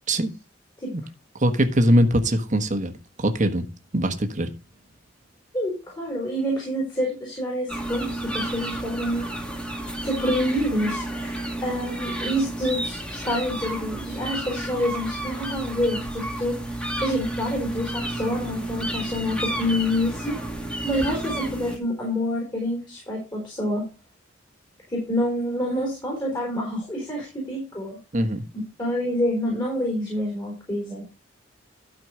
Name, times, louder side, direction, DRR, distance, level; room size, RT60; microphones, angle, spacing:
voice 1, 1.4-2.9 3.2-3.6 3.9-4.5 28.1-28.4, equal, 40° right, 1.3 m, -21 dB
voice 2, 5.5-9.2 10.0-20.4 20.8-23.8 24.9-28.0 28.8-31.0, equal, 25° left, 4.1 m, -27 dB
sound 1, 7.7-21.8, right 1 dB, 5° left, 1.8 m, -31 dB
12.5 x 5.0 x 4.9 m
head